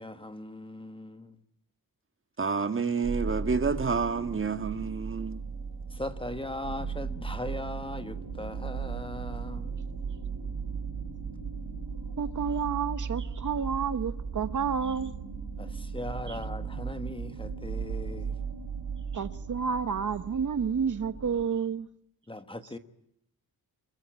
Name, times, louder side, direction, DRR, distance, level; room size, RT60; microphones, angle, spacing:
voice 1, 0.0-1.4 5.9-9.9 15.6-18.4 22.3-22.8, left 1 dB, 15° left, 1.4 m, -39 dB
voice 2, 2.4-5.4, right 5 dB, 35° right, 1.6 m, -29 dB
sound 1, 3.0-21.4, right 5 dB, 85° right, 7.8 m, -37 dB
voice 3, 12.2-15.1 16.3-16.4 19.1-21.9, right 6 dB, 55° right, 1.0 m, -30 dB
25.5 x 22.5 x 8.7 m
wide cardioid pair, 150°, 36 cm